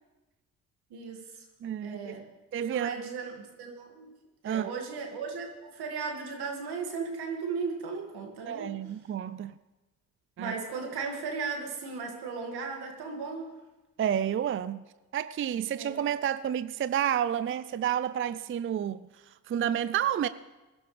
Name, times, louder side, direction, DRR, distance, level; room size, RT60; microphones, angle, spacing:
voice 1, 0.9-1.3 1.8-2.3 2.6-4.2 4.4-8.7 10.4-13.5 15.8-16.0, right 5 dB, 75° right, 2.2 m, -36 dB
voice 2, 1.6-2.2 2.5-3.0 4.4-4.7 8.5-9.6 10.4-10.5 14.0-14.8 15.1-20.3, right 10 dB, 35° right, 0.4 m, -30 dB
20.0 x 11.5 x 3.3 m
supercardioid pair, 50°, 39 cm